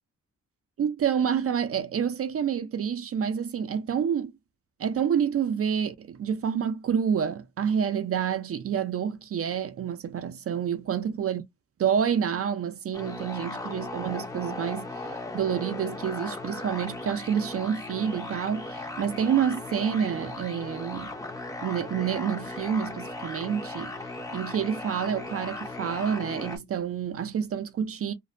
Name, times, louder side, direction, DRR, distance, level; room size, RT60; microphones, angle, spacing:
voice 1, 0.8-4.3 4.8-11.4 11.8-15.0 15.3-21.1 21.6-23.9 24.3-28.1, right 8 dB, 50° right, 0.4 m, -28 dB
sound 1, 12.9-26.6, left 2 dB, 10° left, 0.5 m, -37 dB
2.5 x 2.1 x 2.4 m
wide cardioid pair, 140°, 29 cm